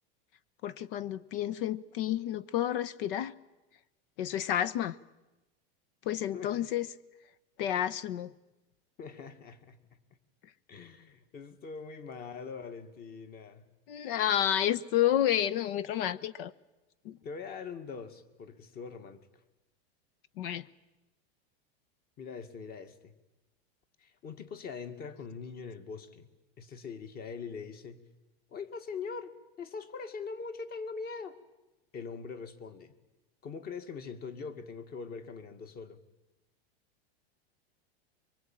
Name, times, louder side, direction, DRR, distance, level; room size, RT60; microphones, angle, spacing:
voice 1, 0.6-3.3 4.2-4.9 6.1-6.9 7.6-8.3 13.9-16.5 17.0-17.2 20.4-20.7, left 11 dB, 65° left, 19 dB, 1.1 m, -30 dB
voice 2, 9.0-10.0 10.7-13.7 17.2-19.2 22.2-23.1 24.0-26.3 26.6-28.0 28.5-31.4 31.9-32.9 33.4-36.0, left 5 dB, 30° left, 10 dB, 2.0 m, -42 dB
25.0 x 23.5 x 9.0 m, 1.0 s
supercardioid pair, 145°, 30 cm